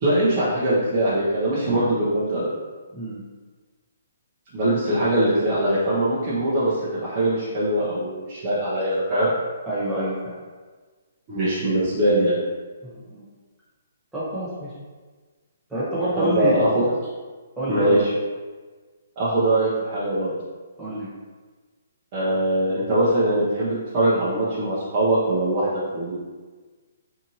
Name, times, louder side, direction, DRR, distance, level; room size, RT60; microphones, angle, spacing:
voice 1, 0.0-2.5 4.5-9.3 11.3-12.4 16.1-16.8 17.7-18.1 19.2-20.3 22.1-26.2, right 1 dB, 35° right, -11 dB, 0.7 m, -22 dB
voice 2, 9.7-10.4 12.8-13.3 14.1-14.7 15.7-16.5 17.6-18.0 20.8-21.1, right 1 dB, ahead, -13 dB, 1.2 m, -27 dB
2.7 x 2.5 x 2.9 m, 1.4 s
hypercardioid pair, 155°, 0 cm